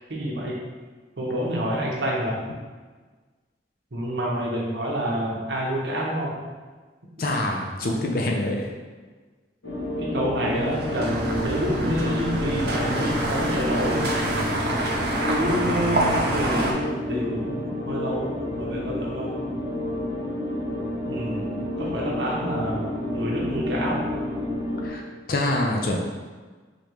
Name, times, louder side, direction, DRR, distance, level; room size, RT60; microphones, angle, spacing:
voice 1, 0.1-0.5 1.2-2.4 3.9-6.4 10.0-14.0 15.3-16.8 17.1-19.3 21.1-21.5 21.8-24.0, equal, 75° right, -4 dB, 1.0 m, -28 dB
voice 2, 7.2-8.7 24.8-25.0 25.3-26.0, left 1 dB, 55° left, 0 dB, 0.5 m, -25 dB
sound 1, 9.6-24.9, left 1 dB, 85° left, 1.0 m, -30 dB
sound 2, 10.4-16.7, right 1 dB, 60° right, 0.6 m, -27 dB
5.0 x 2.9 x 3.0 m, 1.4 s
head